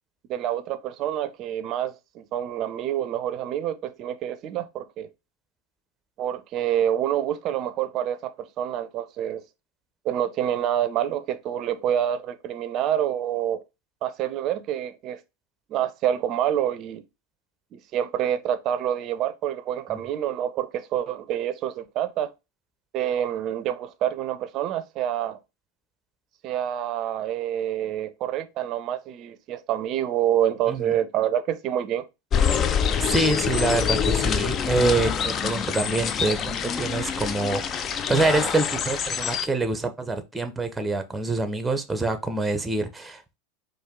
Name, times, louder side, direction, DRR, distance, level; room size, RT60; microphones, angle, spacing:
voice 1, 0.3-5.1 6.2-9.4 10.0-13.6 14.0-15.2 15.7-17.0 17.7-22.3 22.9-25.4 26.4-32.1, right 10 dB, 45° right, 0.5 m, -27 dB
sound 1, 32.3-39.5, left 7 dB, 35° left, 0.4 m, -25 dB
voice 2, 33.0-43.4, right 2 dB, 10° right, 0.7 m, -26 dB
4.4 x 2.7 x 3.6 m
figure-of-eight pair, 85°, 0 cm